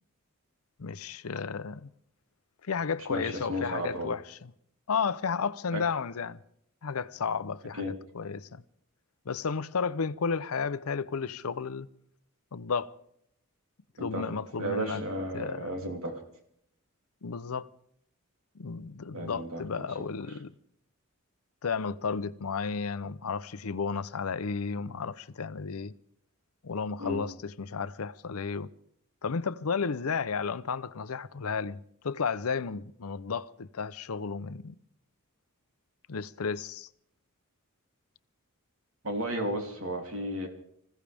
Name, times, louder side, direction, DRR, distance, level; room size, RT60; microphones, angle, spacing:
voice 1, 0.8-1.9 2.7-4.5 4.9-6.4 6.8-8.6 9.3-11.9 12.5-12.9 14.0-15.1 15.3-15.8 17.2-17.7 18.6-20.5 21.6-25.9 26.6-28.7 29.2-34.8 36.1-36.9, left 5 dB, 90° left, 0.7 m, -33 dB
voice 2, 3.1-4.1 5.7-5.8 7.8-8.0 14.0-14.3 14.6-16.2 19.1-19.9 27.0-27.2 39.0-40.5, equal, 70° right, 3.1 m, -33 dB
25.5 x 15.5 x 3.5 m
head